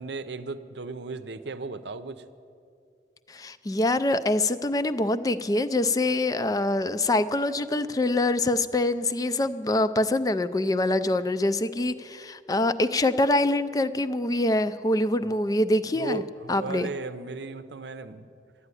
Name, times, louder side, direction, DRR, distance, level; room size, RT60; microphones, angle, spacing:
voice 1, 0.0-2.2 15.2-15.3 15.9-18.3, right 3 dB, 75° right, 11 dB, 0.6 m, -36 dB
voice 2, 3.3-16.2 16.5-16.9, left 2 dB, 20° left, 12 dB, 0.4 m, -25 dB
12.5 x 9.8 x 9.8 m, 2.4 s
head